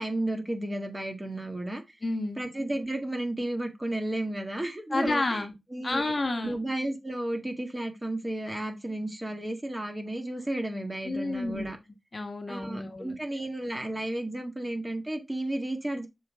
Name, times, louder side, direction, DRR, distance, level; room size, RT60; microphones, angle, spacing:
voice 1, 0.0-1.8 2.4-5.4 5.7-6.1 6.4-11.8 12.5-16.1, right 1 dB, 20° right, 1.8 m, -33 dB
voice 2, 2.0-2.4 4.9-5.5 5.8-6.6 11.0-11.7 12.1-13.1, left 2 dB, 40° left, 1.5 m, -30 dB
6.8 x 5.5 x 3.7 m
wide cardioid pair, 90°, 0 cm